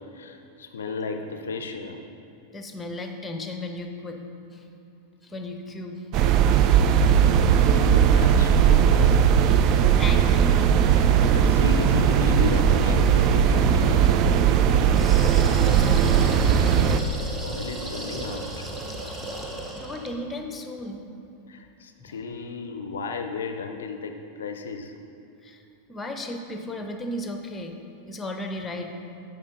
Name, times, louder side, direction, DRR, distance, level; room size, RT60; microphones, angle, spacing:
voice 1, 0.0-2.0 7.6-9.2 10.9-11.0 11.3-14.1 16.9-18.7 21.5-24.9, left 4 dB, 65° left, 6 dB, 0.4 m, -34 dB
voice 2, 2.5-4.2 4.5-4.7 5.2-6.1 9.4-9.7 10.0-11.2 15.0-16.5 19.7-21.0 22.0-22.2 25.4-25.6 25.9-27.8 28.1-28.9, left 1 dB, 15° left, 5 dB, 0.7 m, -35 dB
sound 1, 6.1-17.0, right 8 dB, 40° right, 0.3 m, -18 dB
sound 2, 14.9-20.2, right 1 dB, 10° right, 0.9 m, -35 dB
8.7 x 5.8 x 3.8 m, 2.7 s
figure-of-eight pair, 90°, 0 cm